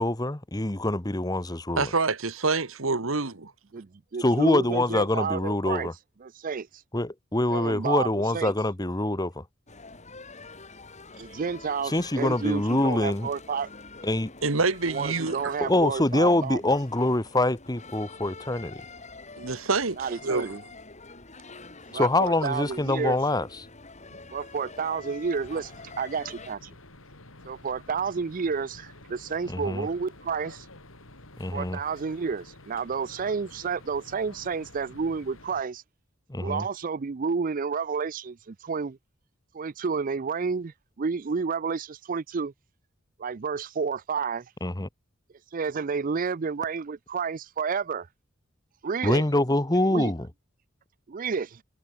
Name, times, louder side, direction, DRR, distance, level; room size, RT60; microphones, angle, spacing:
voice 1, 0.0-1.9 4.2-5.9 6.9-9.4 11.9-13.3 14.0-14.3 15.6-18.8 21.9-23.5 29.5-29.9 31.4-31.8 36.3-36.6 44.6-44.9 49.0-50.3, left 1 dB, 20° left, 1.4 m, -25 dB
voice 2, 1.8-3.5 14.4-15.5 19.4-20.0 20.2-20.5, right 3 dB, 75° right, 1.7 m, -26 dB
voice 3, 3.7-5.9 6.2-6.8 7.5-8.5 11.2-13.7 14.9-16.6 20.0-20.6 21.9-23.2 24.3-26.7 27.5-30.7 31.5-35.8 36.4-39.0 39.5-42.5 43.2-44.5 45.5-48.1 48.8-49.2 49.9-50.1 51.1-51.6, right 5 dB, 40° right, 0.5 m, -30 dB
sound 1, 9.7-26.6, left 3 dB, 35° left, 6.9 m, -46 dB
sound 2, 25.4-35.6, left 2 dB, 75° left, 6.5 m, -50 dB
head